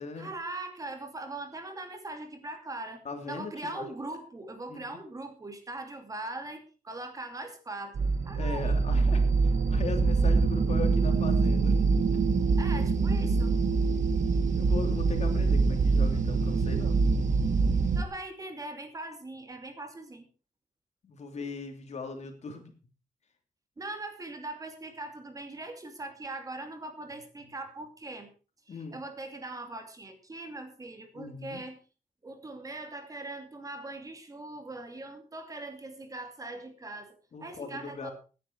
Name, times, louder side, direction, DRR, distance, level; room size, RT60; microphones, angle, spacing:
voice 1, 0.2-3.0 3.3-8.8 12.6-13.6 18.0-20.3 23.8-28.3 28.7-31.8 32.2-37.1 37.4-38.1, right 2 dB, 25° right, 6 dB, 2.6 m, -41 dB
voice 2, 3.0-3.9 4.7-5.0 8.3-11.8 14.5-17.0 21.0-22.7 28.7-29.0 31.1-31.6 37.3-38.1, left 4 dB, 55° left, 5 dB, 3.0 m, -39 dB
sound 1, 7.9-18.0, right 4 dB, 65° right, 1.7 m, -25 dB
17.0 x 10.0 x 4.6 m, 0.35 s
wide cardioid pair, 155°, 14 cm